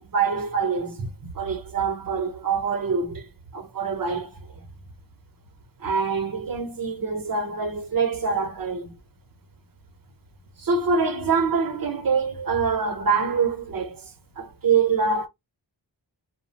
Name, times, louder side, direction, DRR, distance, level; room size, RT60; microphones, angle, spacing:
voice 1, 0.0-4.4 5.8-9.0 10.6-14.1 14.4-15.3, right 5 dB, 50° right, 0.8 m, -25 dB
2.3 x 2.1 x 2.7 m
wide cardioid pair, 65°, 44 cm